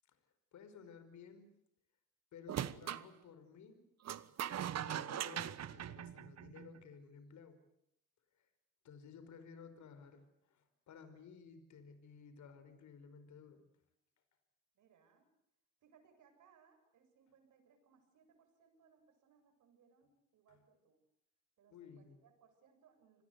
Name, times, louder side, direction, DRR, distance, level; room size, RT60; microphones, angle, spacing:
voice 1, 0.5-1.5 2.3-3.9 4.8-7.6 8.8-13.6 20.5-20.6 21.7-22.2, left 6 dB, 70° left, 10 dB, 5.1 m, -56 dB
sound 1, 2.5-3.1 4.1-6.8, right 10 dB, 60° right, 1.2 m, -41 dB
voice 2, 14.7-15.3 15.8-21.0 21.6-23.2, right 6 dB, 75° right, 6 dB, 7.9 m, -69 dB
27.0 x 20.5 x 8.2 m, 0.79 s
cardioid pair, 90°, 30 cm